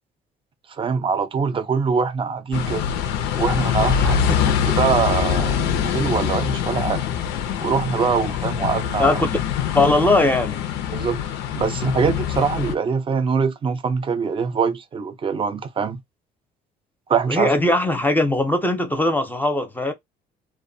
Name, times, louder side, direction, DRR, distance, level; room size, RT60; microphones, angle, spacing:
voice 1, 0.7-2.9 3.3-4.2 4.7-7.0 7.6-9.2 10.9-16.0 17.1-17.5, right 5 dB, 30° right, 0.5 m, -23 dB
sound 1, 2.5-12.7, left 8 dB, 90° left, 0.5 m, -24 dB
voice 2, 9.0-9.3 9.7-10.6 17.3-19.9, left 2 dB, 10° left, 0.6 m, -19 dB
2.5 x 2.1 x 2.6 m
cardioid pair, 110°, 17 cm